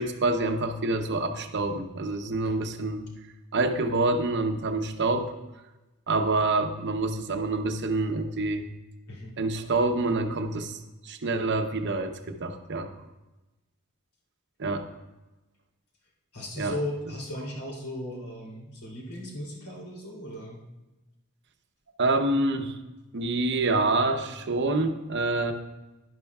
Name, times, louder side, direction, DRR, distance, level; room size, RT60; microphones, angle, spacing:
voice 1, 0.0-3.1 3.5-5.3 6.1-8.6 9.4-12.9 14.6-14.8 16.6-16.7 22.0-22.8 23.1-25.5, right 2 dB, 50° right, 6 dB, 0.8 m, -27 dB
voice 2, 16.3-20.6, left 1 dB, 75° left, -3 dB, 3.0 m, -37 dB
11.0 x 11.0 x 2.3 m, 1.1 s
head